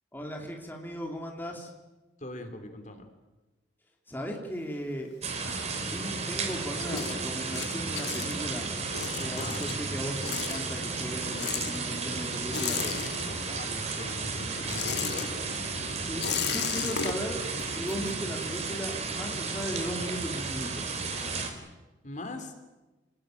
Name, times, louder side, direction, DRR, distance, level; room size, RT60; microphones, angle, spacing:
voice 1, 0.1-1.7 4.1-5.1 5.8-8.7 9.2-12.9 16.1-21.1, equal, 10° left, 1 dB, 3.0 m, -37 dB
voice 2, 2.2-3.1 9.1-9.7 12.8-15.7 22.0-22.5, left 1 dB, 40° left, 6 dB, 3.2 m, -42 dB
sound 1, 4.5-6.1 6.5-13.7 14.0-18.7, left 7 dB, 65° left, 1.5 m, -36 dB
sound 2, 5.2-21.5, right 4 dB, 40° right, 3.6 m, -33 dB
28.0 x 20.0 x 9.1 m, 1.1 s
head